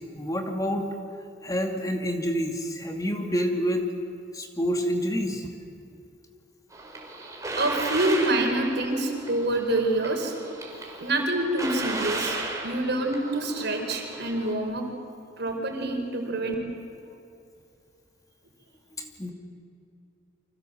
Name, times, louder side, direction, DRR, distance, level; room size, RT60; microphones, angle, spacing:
voice 1, 0.1-0.9 1.4-3.9 4.3-5.5 7.0-7.1 19.0-19.3, equal, 20° left, 3 dB, 2.4 m, -28 dB
sound 1, 6.7-14.5, right 2 dB, 15° right, 4.7 m, -35 dB
voice 2, 7.6-10.3 11.0-12.4 12.6-14.8 15.4-16.5, right 1 dB, 60° right, 3 dB, 4.8 m, -26 dB
30.0 x 25.5 x 7.8 m, 2.6 s
head